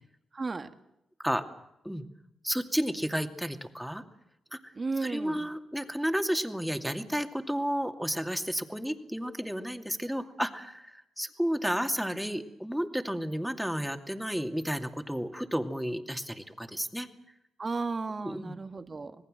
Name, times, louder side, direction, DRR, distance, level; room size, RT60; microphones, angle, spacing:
voice 1, 0.3-0.7 4.8-5.5 17.6-19.2, right 3 dB, 40° right, 9 dB, 1.9 m, -34 dB
voice 2, 2.4-4.0 4.5-4.7 5.0-17.1 18.2-18.5, equal, 5° right, 6 dB, 2.5 m, -32 dB
26.5 x 19.0 x 7.7 m, 0.84 s
supercardioid pair, 45°, 0 cm